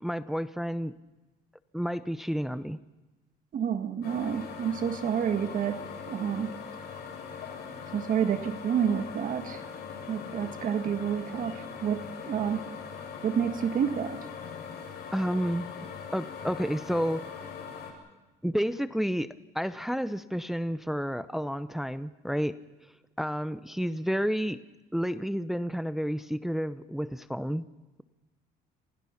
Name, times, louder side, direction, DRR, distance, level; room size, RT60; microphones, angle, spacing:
voice 1, 0.0-1.0 1.7-2.8 15.1-15.7 16.1-17.2 18.4-22.6 23.2-24.6 24.9-27.7, equal, ahead, 12 dB, 0.7 m, -30 dB
voice 2, 3.5-5.8 6.1-6.6 7.9-9.6 10.1-12.7 13.2-14.2, right 8 dB, 55° right, 8 dB, 1.6 m, -29 dB
sound 1, 4.0-17.9, left 6 dB, 75° left, 7.9 m, -41 dB
28.5 x 27.5 x 5.9 m, 1.1 s
cardioid pair, 110°, 17 cm